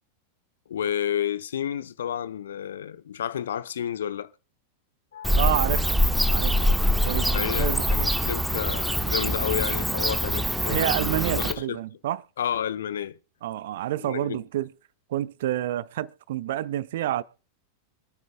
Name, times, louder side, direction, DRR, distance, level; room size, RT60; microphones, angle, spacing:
voice 1, 0.7-4.3 5.1-5.4 6.6-6.7 7.3-11.8 12.4-13.2 14.0-14.4, left 9 dB, 65° left, 0.7 m, -31 dB
Bird / Cricket, 5.2-11.5, equal, 5° right, 0.9 m, -24 dB
voice 2, 5.4-6.0 6.3-6.7 7.0-7.8 10.7-12.2 13.4-14.7 15.1-17.2, right 13 dB, 55° right, 0.5 m, -28 dB
26.0 x 9.4 x 2.4 m
figure-of-eight pair, 90°, 0 cm